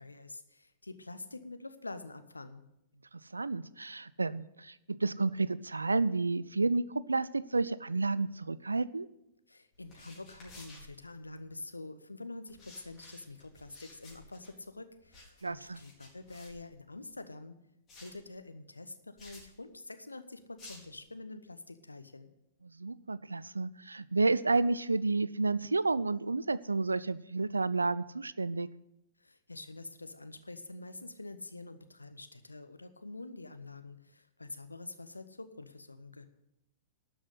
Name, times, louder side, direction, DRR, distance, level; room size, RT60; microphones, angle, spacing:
voice 1, 0.0-2.6 9.5-17.6 17.9-22.3 29.2-36.3, left 2 dB, 80° left, 10 dB, 0.9 m, -46 dB
voice 2, 3.1-9.1 15.4-15.8 22.8-28.7, right 3 dB, 80° right, 18 dB, 0.4 m, -31 dB
sound 1, 9.7-11.6 12.5-17.2 17.9-18.3 19.2-19.5 20.6-21.0, left 2 dB, 25° left, 4.3 m, -55 dB
12.5 x 6.1 x 8.2 m, 0.85 s
figure-of-eight pair, 100°, 0 cm